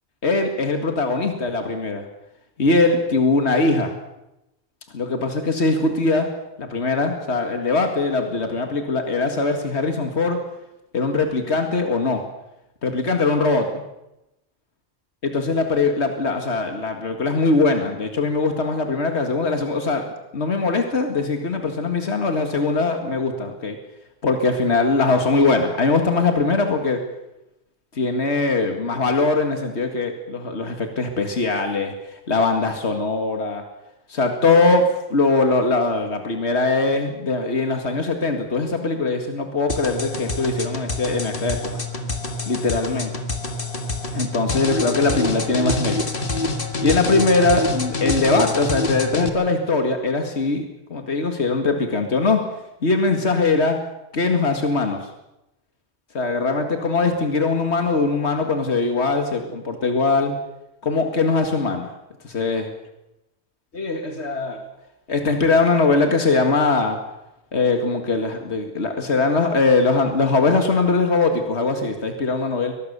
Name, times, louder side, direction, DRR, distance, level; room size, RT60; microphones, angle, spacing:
voice 1, 0.2-2.0 2.6-3.9 4.9-6.3 6.6-10.4 10.9-12.2 12.8-13.8 15.2-20.0 20.3-23.8 24.2-27.0 27.9-33.6 34.1-41.7 42.5-43.1 44.1-46.0 46.8-50.7 50.9-52.4 52.8-53.8 54.1-55.1 56.1-60.3 60.8-61.9 62.2-62.6 63.7-64.6 65.1-67.0 67.5-72.7, left 3 dB, 80° left, 5 dB, 2.3 m, -21 dB
sound 1, 39.7-49.3, left 2 dB, 55° left, 2.0 m, -26 dB
23.5 x 19.5 x 6.9 m, 0.90 s
omnidirectional pair, 1.1 m